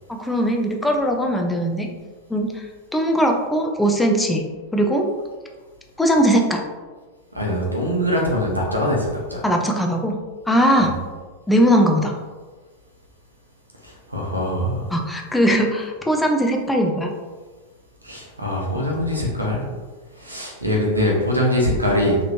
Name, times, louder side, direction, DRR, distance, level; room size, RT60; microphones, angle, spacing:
voice 1, 0.1-1.9 2.3-2.6 2.9-4.4 4.7-5.0 6.0-6.6 9.4-10.2 10.5-10.9 11.5-12.1 14.9-17.1, equal, 5° left, 2 dB, 0.4 m, -19 dB
voice 2, 7.3-9.4 10.8-10.9 13.8-14.9 18.0-19.6 20.2-22.2, left 1 dB, 85° right, -1 dB, 0.9 m, -22 dB
4.0 x 3.0 x 2.8 m, 1.3 s
figure-of-eight pair, 90°, 0 cm